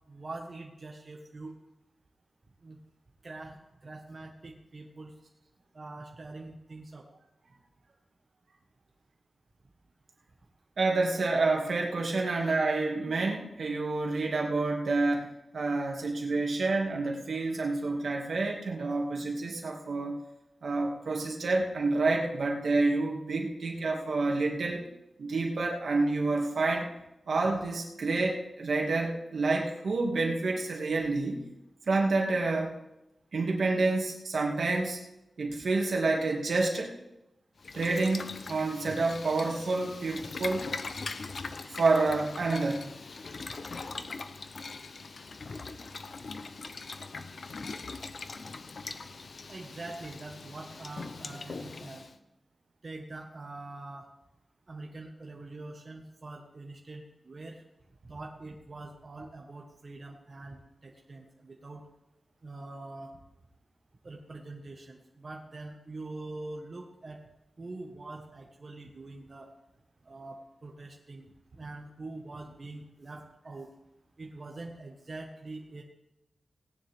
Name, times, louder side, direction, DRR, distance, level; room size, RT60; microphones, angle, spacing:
voice 1, 0.1-1.6 2.6-2.8 3.2-5.1 5.7-7.1 49.5-52.0 52.8-54.1 54.7-57.6 58.1-61.8 62.4-63.2 64.0-67.2 67.6-69.5 70.0-73.7 74.2-75.8, right 2 dB, 45° right, 0 dB, 1.6 m, -44 dB
voice 2, 10.8-15.2 15.5-20.1 20.6-24.8 25.2-26.9 27.3-31.4 31.9-32.7 33.3-35.0 35.4-36.9 37.7-40.7 41.8-42.9, right 3 dB, 75° right, 0 dB, 2.4 m, -28 dB
Boiling, 37.6-52.1, left 4 dB, 60° left, 0.8 m, -41 dB
18.5 x 10.0 x 3.7 m, 0.91 s
wide cardioid pair, 110°, 0 cm